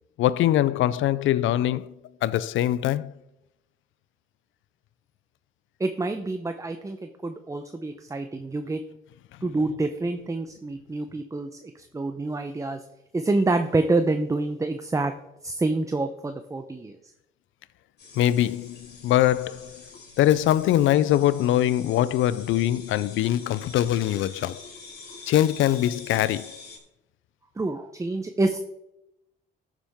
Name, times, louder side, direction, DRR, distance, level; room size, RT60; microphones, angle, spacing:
voice 1, 0.2-1.9 2.2-3.1 18.2-19.8 20.2-24.6 25.3-26.6, left 13 dB, 80° left, 0.5 m, -22 dB
voice 2, 5.8-8.8 9.4-12.8 13.1-15.1 15.4-17.0 27.6-28.6, right 2 dB, 15° right, 0.7 m, -27 dB
sound 1, 18.0-26.8, left 4 dB, 55° left, 4.1 m, -45 dB
14.5 x 7.4 x 3.6 m
cardioid pair, 90°, 20 cm